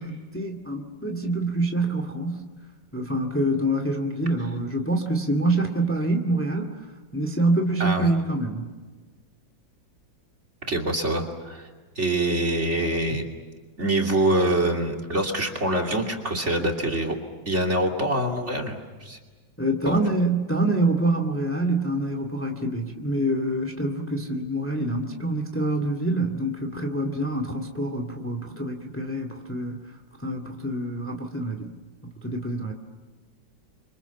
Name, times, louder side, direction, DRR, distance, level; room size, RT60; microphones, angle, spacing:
voice 1, 0.0-2.4 2.9-6.7 7.1-8.7 19.6-29.8 30.2-31.7 32.2-32.7, right 1 dB, 5° left, 5 dB, 2.2 m, -26 dB
voice 2, 7.8-8.1 10.7-11.7 12.0-13.2 13.8-17.2 17.5-19.2 19.8-20.0, right 1 dB, 35° right, 2 dB, 3.0 m, -25 dB
29.5 x 25.5 x 7.2 m, 1.3 s
omnidirectional pair, 2.0 m